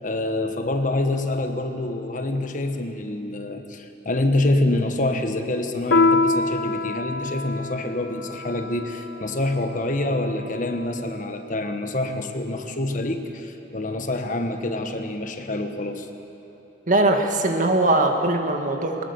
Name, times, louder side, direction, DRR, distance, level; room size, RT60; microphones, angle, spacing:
voice 1, 0.0-16.1, left 2 dB, 45° left, 6 dB, 1.3 m, -26 dB
Piano, 5.9-10.9, left 3 dB, 70° left, 0.8 m, -25 dB
voice 2, 16.9-19.0, right 2 dB, 45° right, 3 dB, 1.9 m, -21 dB
22.0 x 20.0 x 7.1 m, 2.9 s
head